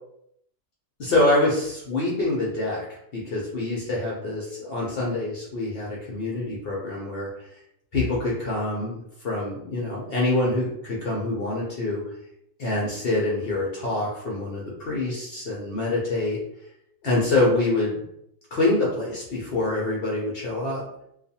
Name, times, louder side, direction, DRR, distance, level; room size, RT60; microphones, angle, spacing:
voice 1, 1.0-7.3 7.9-9.0 9.2-12.0 12.6-16.4 17.0-18.0 18.5-20.8, left 2 dB, 65° left, -4 dB, 0.6 m, -25 dB
2.4 x 2.3 x 2.7 m, 0.76 s
omnidirectional pair, 1.6 m